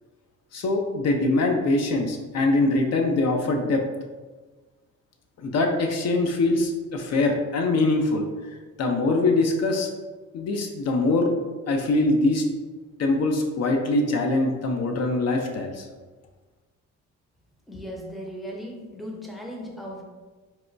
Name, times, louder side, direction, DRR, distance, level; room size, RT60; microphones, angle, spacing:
voice 1, 0.5-3.8 5.4-8.2 8.8-9.9 10.3-11.3 11.7-12.4 13.0-15.9, left 2 dB, 60° left, 3 dB, 0.5 m, -23 dB
voice 2, 17.7-20.0, equal, ahead, -1 dB, 0.5 m, -37 dB
4.1 x 2.2 x 2.5 m, 1.3 s
cardioid pair, 90°, 30 cm